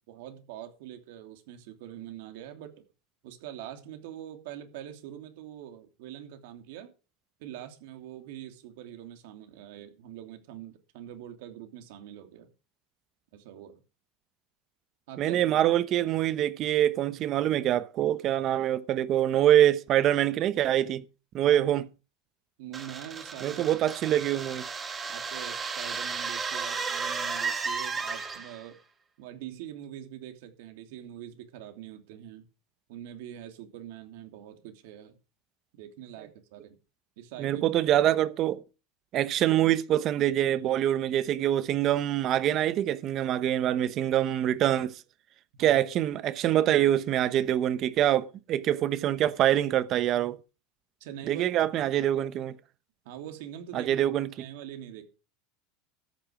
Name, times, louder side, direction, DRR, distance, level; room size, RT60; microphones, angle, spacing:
voice 1, 0.1-2.7 3.2-6.9 7.4-12.5 13.3-13.8 15.1-15.6 21.4-21.6 22.6-23.6 25.1-28.8 29.2-32.5 32.9-35.2 35.7-36.8 37.2-37.6 45.5-45.9 51.0-51.5 51.8-51.9 53.0-54.0 54.4-55.1, right 11 dB, 70° right, 3.0 m, -44 dB
voice 2, 15.2-21.0 21.3-21.9 23.4-24.6 37.4-38.6 39.1-44.9 45.6-50.4 51.2-52.6 53.7-54.3, right 12 dB, 35° right, 0.9 m, -25 dB
sound 1, 22.7-28.6, right 5 dB, 15° right, 1.9 m, -34 dB
13.5 x 8.9 x 5.1 m
supercardioid pair, 160°, 0 cm